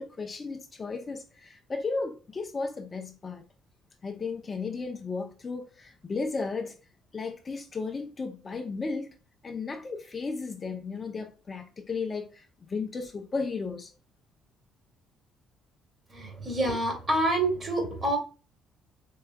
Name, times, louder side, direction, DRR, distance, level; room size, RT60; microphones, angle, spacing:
voice 1, 0.0-3.4 4.0-6.8 7.1-9.1 9.4-13.9, left 4 dB, 35° left, 0.7 m, -34 dB
voice 2, 16.1-18.2, right 1 dB, 35° right, 2.1 m, -27 dB
4.7 x 3.2 x 2.3 m
supercardioid pair, 65°, 0 cm